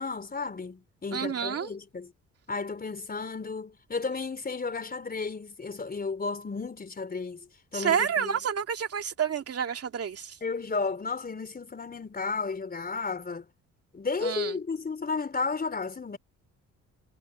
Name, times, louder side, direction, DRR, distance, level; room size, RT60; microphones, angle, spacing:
voice 1, 0.0-2.1 2.5-7.5 7.7-8.4 10.4-13.5 13.9-16.2, left 4 dB, 30° left, 4.4 m, -33 dB
voice 2, 1.1-1.7 7.7-10.3 14.2-14.5, right 8 dB, 50° right, 2.5 m, -29 dB
cardioid pair, 90°, 30 cm